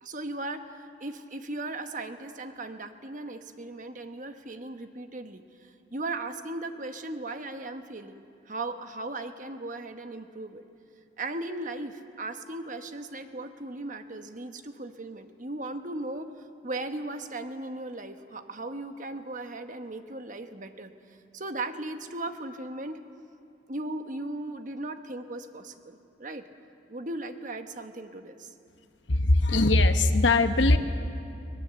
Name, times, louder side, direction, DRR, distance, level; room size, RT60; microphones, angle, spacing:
voice 1, 0.0-10.6 11.2-20.9 21.3-23.0 23.7-26.4 26.9-28.5, right 2 dB, 45° right, 7 dB, 1.2 m, -37 dB
voice 2, 29.1-30.8, left 2 dB, 90° left, 8 dB, 1.2 m, -21 dB
23.5 x 21.0 x 7.6 m, 2.6 s
head